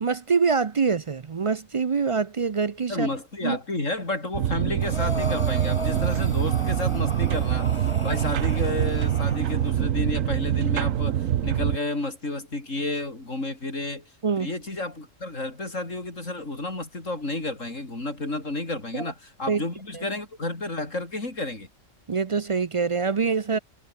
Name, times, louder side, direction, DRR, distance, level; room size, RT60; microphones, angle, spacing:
voice 1, 0.0-3.1 3.4-3.6 14.2-14.5 18.9-19.1 19.5-19.6 19.9-20.0 22.1-23.6, right 5 dB, 50° right, 0.4 m, -25 dB
voice 2, 2.9-14.1 14.4-21.7, left 2 dB, 75° left, 5.6 m, -31 dB
sound 1, 4.3-11.8, right 10 dB, 90° right, 1.2 m, -24 dB
Breathing, 4.8-9.7, left 1 dB, 20° left, 3.6 m, -36 dB
omnidirectional pair, 1.3 m